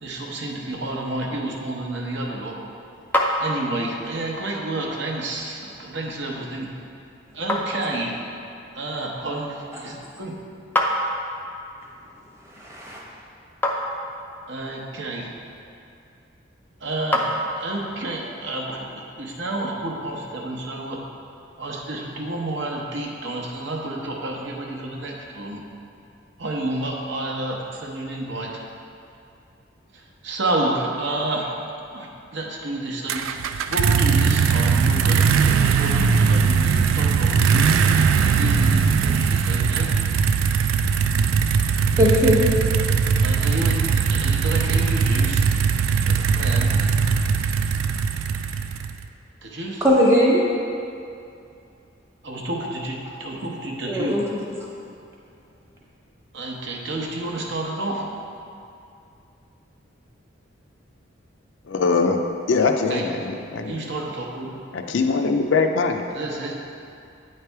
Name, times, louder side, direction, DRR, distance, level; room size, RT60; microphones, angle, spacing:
voice 1, 0.0-2.5 3.4-6.7 7.3-8.1 8.7-10.3 14.5-15.3 16.8-17.3 17.5-21.0 21.6-25.6 26.4-28.5 29.9-31.5 31.9-33.3 33.7-37.8 38.1-39.9 43.2-45.4 46.0-46.7 49.4-49.9 52.2-54.2 56.3-58.0 62.9-63.0 63.7-64.5 66.1-66.7, right 2 dB, 65° right, -1 dB, 0.8 m, -30 dB
sound 1, 2.8-18.0, left 1 dB, 10° left, 0.4 m, -31 dB
voice 2, 12.5-13.0 42.0-42.4 49.8-50.4 53.9-54.4, equal, 15° right, -4 dB, 0.9 m, -19 dB
sound 2, 33.1-49.1, right 6 dB, 90° right, 0.3 m, -20 dB
voice 3, 61.7-62.2 62.5-63.7 64.7-66.0, left 4 dB, 70° left, 5 dB, 0.4 m, -22 dB
9.0 x 3.3 x 4.5 m, 2.5 s
head